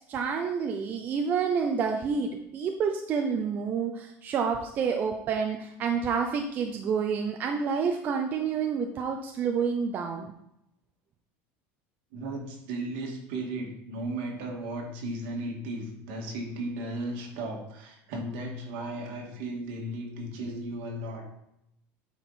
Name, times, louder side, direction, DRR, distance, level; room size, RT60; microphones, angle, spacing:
voice 1, 0.1-10.3, right 6 dB, 30° right, 3 dB, 0.5 m, -29 dB
voice 2, 12.1-21.3, right 1 dB, 65° right, 0 dB, 2.1 m, -35 dB
9.4 x 4.5 x 4.2 m, 0.81 s
cardioid pair, 170°, 6 cm